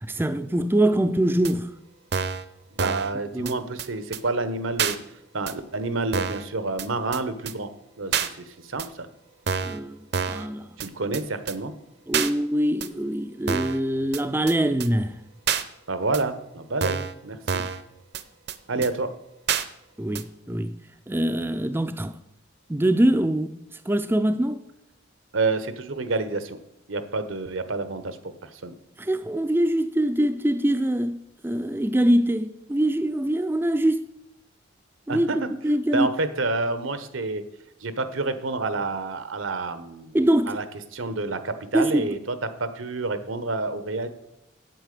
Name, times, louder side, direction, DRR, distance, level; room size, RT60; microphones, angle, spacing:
voice 1, 0.0-1.7 3.3-3.6 9.6-10.7 12.1-15.2 18.8-18.9 20.0-20.7 21.1-22.1 22.7-23.5 23.9-24.6 29.0-34.1 35.1-36.1 40.1-40.5 41.7-42.1, right 1 dB, 10° right, 0.4 m, -23 dB
sound 1, 1.4-1.5 2.1-2.4 2.8-3.1 3.5-3.6 3.8-3.9 4.1-4.2 4.8-5.0 5.5-5.6 6.1-6.4 6.8-6.9 7.1-7.2 7.5-7.6 8.1-8.3 8.8-8.9 9.5-9.8 10.1-10.5 10.8-10.9 11.1-11.2 11.5-11.6 12.1-12.3 12.8-12.9 13.5-13.8 14.1-14.2 14.5-14.6 14.8-14.9 15.5-15.6 16.1-16.2 16.8-17.1 17.5-17.8 18.1-18.2 18.5-18.6 18.8-18.9 19.5-19.6 20.1-20.2, right 6 dB, 55° right, 0.7 m, -27 dB
voice 2, 2.7-5.0 5.3-7.7 8.0-9.1 10.8-11.7 15.9-17.6 18.7-19.1 25.3-26.6 26.9-28.2 28.4-28.7 35.1-35.5 35.9-37.4 37.8-40.2 40.5-40.6 40.9-44.1, right 3 dB, 85° right, 1.1 m, -28 dB
9.0 x 8.4 x 6.7 m
head